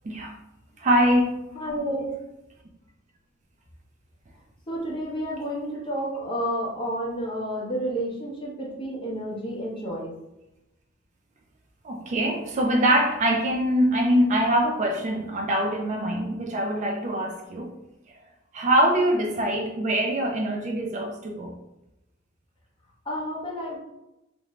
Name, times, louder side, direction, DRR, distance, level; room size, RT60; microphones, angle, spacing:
voice 1, 0.8-1.4 11.8-17.7 18.1-18.2 18.5-21.5, right 1 dB, 40° right, 0.4 m, -23 dB
voice 2, 1.6-2.1 4.7-10.1 23.1-23.8, equal, 25° left, 0.7 m, -30 dB
2.5 x 2.1 x 2.9 m
head